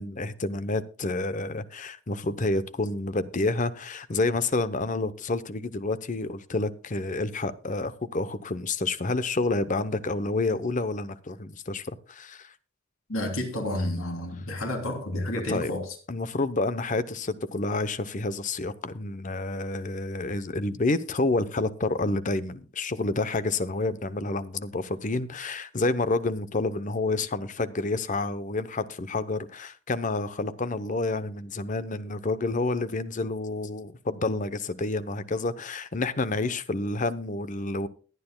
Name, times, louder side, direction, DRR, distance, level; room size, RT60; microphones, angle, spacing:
voice 1, 0.0-12.5 15.3-15.7 16.1-37.9, left 2 dB, 40° left, 0.8 m, -29 dB
voice 2, 13.1-15.8, left 1 dB, 80° left, 3.1 m, -30 dB
22.0 x 9.4 x 2.3 m
head